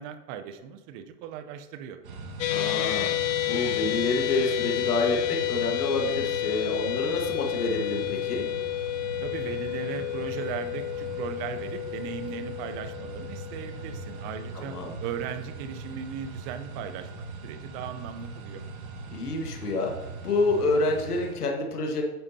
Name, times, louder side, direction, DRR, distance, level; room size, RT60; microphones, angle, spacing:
voice 1, 0.0-2.0 9.2-18.6, right 8 dB, 35° right, 10 dB, 0.8 m, -37 dB
sound 1, 2.0-21.3, right 3 dB, 65° right, 2.2 m, -41 dB
sound 2, 2.4-14.7, left 14 dB, 55° left, 1.1 m, -30 dB
voice 2, 2.5-3.1 3.5-8.5 14.6-14.9 19.1-19.9 20.2-22.0, left 2 dB, 85° left, 2 dB, 1.8 m, -28 dB
10.0 x 8.6 x 2.8 m, 1.1 s
hypercardioid pair, 120°, 45 cm